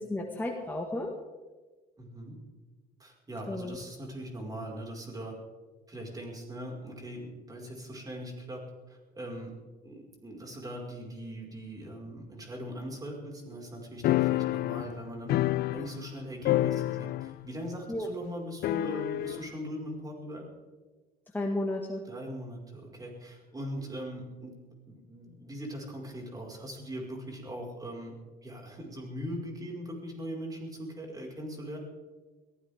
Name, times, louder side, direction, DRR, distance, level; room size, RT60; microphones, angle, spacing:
voice 1, 0.1-1.1 3.5-3.8 17.9-18.1 21.3-22.0, left 1 dB, 10° left, 0 dB, 1.9 m, -32 dB
voice 2, 2.0-2.4 3.0-5.3 5.9-9.5 9.8-15.4 15.7-20.4 22.1-24.6 24.9-28.1 28.4-31.8, equal, 20° right, -1 dB, 5.3 m, -40 dB
sound 1, 14.0-16.2 16.4-17.5 17.7-17.8 18.6-19.4, left 16 dB, 70° left, 0.4 m, -28 dB
22.5 x 15.5 x 3.7 m, 1.3 s
cardioid pair, 110°, 17 cm